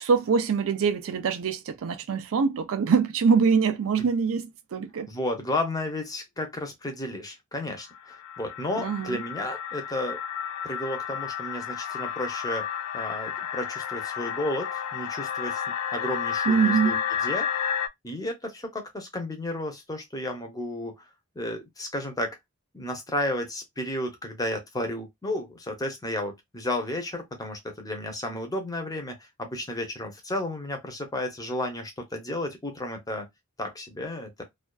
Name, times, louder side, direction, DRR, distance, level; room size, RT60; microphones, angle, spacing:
voice 1, 0.0-5.1 8.8-9.2 16.5-17.0, right 5 dB, 65° right, 0.4 m, -24 dB
voice 2, 5.1-10.2 10.6-12.6 12.9-15.6 15.9-17.0 17.2-17.5 18.0-21.0 21.4-22.4 22.7-33.3 33.6-34.4, left 1 dB, 15° left, 0.6 m, -32 dB
sound 1, 7.8-17.9, left 8 dB, 70° left, 0.3 m, -31 dB
2.4 x 2.3 x 2.2 m
head